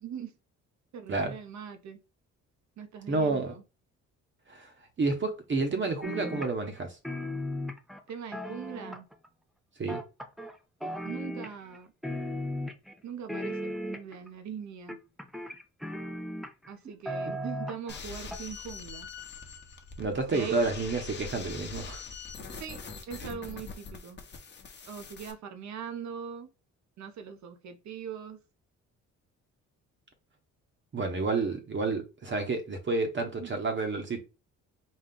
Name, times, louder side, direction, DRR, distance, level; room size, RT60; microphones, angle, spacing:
voice 1, 0.0-0.3 0.9-2.0 2.8-3.6 8.1-9.1 11.0-11.9 13.0-15.0 16.7-19.1 20.3-20.6 22.6-22.8 23.1-24.2 24.9-26.5 27.0-28.4 33.4-33.6, right 7 dB, 65° right, 0.9 m, -41 dB
voice 2, 3.1-3.6 4.5-4.7 5.0-7.0 9.8-10.0 17.3-17.4 20.0-22.0 30.9-34.2, right 3 dB, 40° right, 1.0 m, -30 dB
sound 1, 6.0-6.8 7.0-9.3 9.9-10.6 10.8-11.8 12.0-12.9 13.3-14.3 14.9-16.7 17.1-18.0 18.3-18.4, equal, ahead, 0.5 m, -36 dB
sound 2, 17.9-25.3, left 5 dB, 35° left, 1.0 m, -43 dB
4.2 x 2.3 x 3.7 m
cardioid pair, 90°, 30 cm